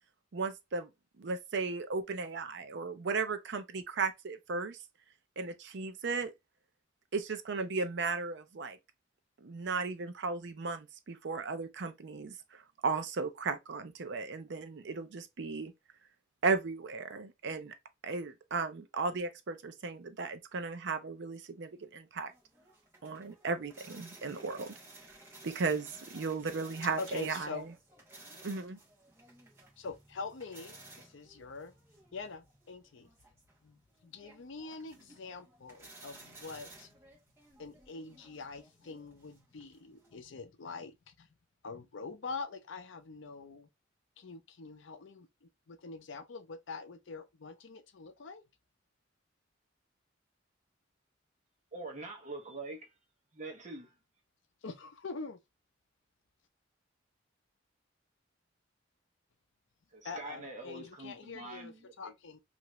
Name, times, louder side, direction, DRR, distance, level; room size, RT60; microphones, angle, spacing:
voice 1, 0.3-0.9 1.2-4.8 5.4-6.3 7.1-8.8 9.4-15.7 16.4-17.7 18.0-22.3 23.0-24.7 25.4-27.7 28.4-28.8, right 4 dB, 60° right, 0.5 m, -35 dB
sound 1, 22.3-40.2, right 2 dB, 15° right, 1.0 m, -56 dB
voice 2, 27.0-27.7 29.8-31.7 32.1-33.1 33.6-36.9 37.6-41.3 41.6-43.7 44.2-48.4 54.6-55.4 60.0-62.4, left 4 dB, 70° left, 0.5 m, -44 dB
voice 3, 51.7-52.9 53.3-53.9 59.9-62.1, right 2 dB, 40° right, 0.9 m, -44 dB
2.9 x 2.5 x 3.0 m
head